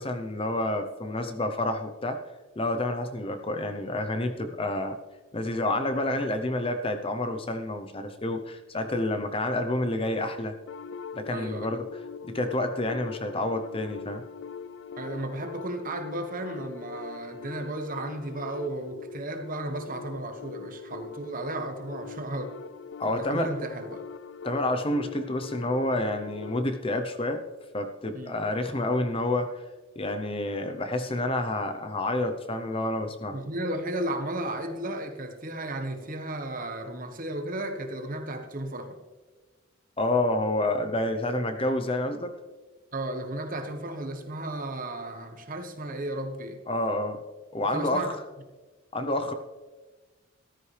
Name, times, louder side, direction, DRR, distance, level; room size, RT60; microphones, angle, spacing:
voice 1, 0.0-2.2 2.6-5.0 5.3-10.5 11.1-11.9 12.2-14.2 23.0-23.6 24.4-27.4 27.7-29.6 30.0-33.4 40.0-42.3 46.7-47.2 47.5-48.1 48.9-49.3, left 1 dB, 25° left, 6 dB, 0.7 m, -29 dB
sound 1, 10.7-26.7, left 5 dB, 60° left, 0.4 m, -42 dB
voice 2, 11.3-11.7 15.0-22.5 23.0-24.0 28.1-28.3 33.3-39.0 42.9-46.6 47.7-48.1, right 1 dB, 40° right, 6 dB, 1.2 m, -34 dB
14.0 x 13.0 x 3.3 m, 1.3 s
head